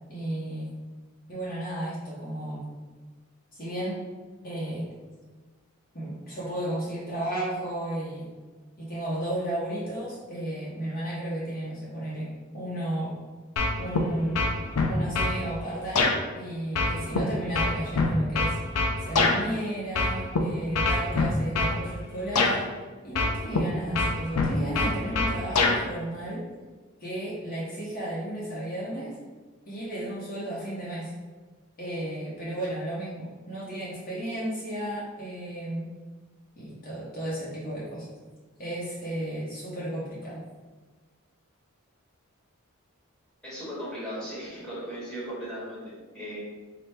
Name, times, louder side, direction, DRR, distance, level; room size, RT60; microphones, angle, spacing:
voice 1, 0.1-0.7 1.3-2.7 3.5-4.0 4.4-4.9 5.9-8.3 8.8-13.1 13.8-14.4 14.9-18.6 19.0-22.7 23.0-26.5 27.0-29.2 29.7-31.1 31.8-35.9 36.6-38.1 38.6-40.4, right 1 dB, 40° left, -7 dB, 0.8 m, -33 dB
sound 1, 13.6-14.1 14.3-15.4 16.0-16.1 16.8-19.4 19.9-20.4 20.7-21.8 22.4-22.5 23.2-23.6 23.9-25.8, left 3 dB, 90° left, 0.5 m, -24 dB
voice 2, 43.4-46.4, equal, 5° left, -8 dB, 1.2 m, -37 dB
4.2 x 2.2 x 3.4 m, 1.4 s
head